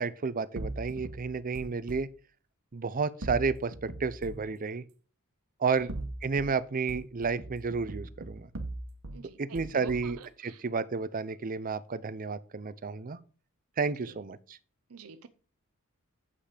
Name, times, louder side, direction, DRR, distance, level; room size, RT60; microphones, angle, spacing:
voice 1, 0.0-2.1 2.7-4.8 5.6-5.9 6.2-8.5 9.4-10.2 10.4-13.2 13.8-14.6, right 5 dB, 40° right, 0.5 m, -31 dB
sound 1, 0.6-2.1 3.2-4.5 5.7-6.6 6.9-9.2 9.6-10.2, right 2 dB, 65° right, 1.2 m, -40 dB
voice 2, 9.1-10.6 14.0-14.3 14.9-15.3, right 5 dB, 90° right, 0.6 m, -46 dB
8.3 x 5.7 x 5.0 m
head